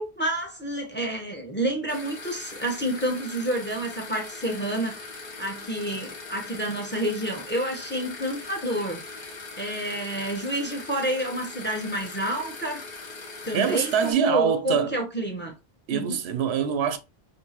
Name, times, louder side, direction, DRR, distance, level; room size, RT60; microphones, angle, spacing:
voice 1, 0.0-12.8 13.4-15.5 15.9-16.2, right 1 dB, 10° left, 0.9 m, -29 dB
sound 1, 1.9-14.1, left 3 dB, 45° left, 0.9 m, -40 dB
voice 2, 13.5-14.9 15.9-17.0, right 7 dB, 85° right, 0.8 m, -24 dB
3.7 x 2.8 x 2.8 m
omnidirectional pair, 1.1 m